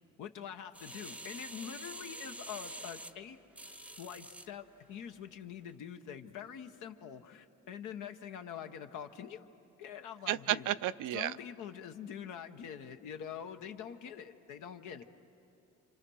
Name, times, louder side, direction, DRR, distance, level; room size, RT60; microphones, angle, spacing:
voice 1, 0.2-3.4 4.0-9.4 9.8-10.7 11.1-15.0, left 8 dB, 85° left, 7 dB, 1.1 m, -45 dB
sound 1, 0.7-4.5 5.1-5.2, right 1 dB, 5° right, 0.6 m, -47 dB
voice 2, 10.3-11.3, right 13 dB, 85° right, 13 dB, 0.6 m, -32 dB
29.0 x 26.0 x 6.3 m, 2.8 s
cardioid pair, 90°, 30 cm